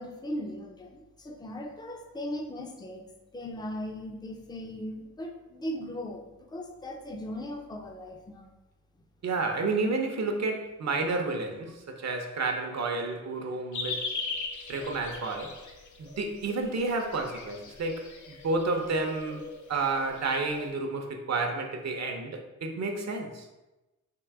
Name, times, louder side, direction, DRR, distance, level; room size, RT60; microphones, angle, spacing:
voice 1, 0.0-3.0 3.3-8.5, left 1 dB, 15° left, 2 dB, 0.5 m, -38 dB
voice 2, 9.2-14.1 14.7-15.6 16.0-23.5, right 3 dB, 60° right, 3 dB, 0.7 m, -31 dB
sound 1, 13.7-20.7, left 4 dB, 75° left, 0.7 m, -40 dB
3.7 x 2.8 x 4.6 m, 1.0 s
wide cardioid pair, 95°, 30 cm